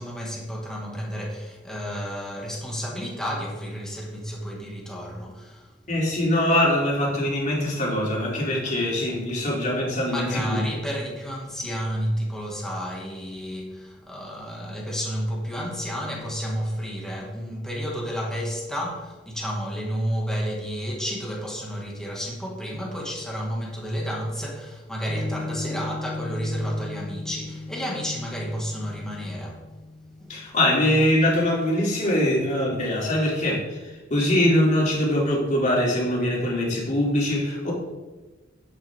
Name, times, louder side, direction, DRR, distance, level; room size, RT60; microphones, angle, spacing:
voice 1, 0.0-5.7 10.1-29.6 30.2-30.4, equal, 5° left, 2.0 m, -31 dB
voice 2, 5.9-10.6 30.3-37.7, left 1 dB, 40° left, 3.2 m, -23 dB
Piano, 25.1-31.7, left 2 dB, 85° right, 3.7 m, -37 dB
10.5 x 8.1 x 3.7 m
head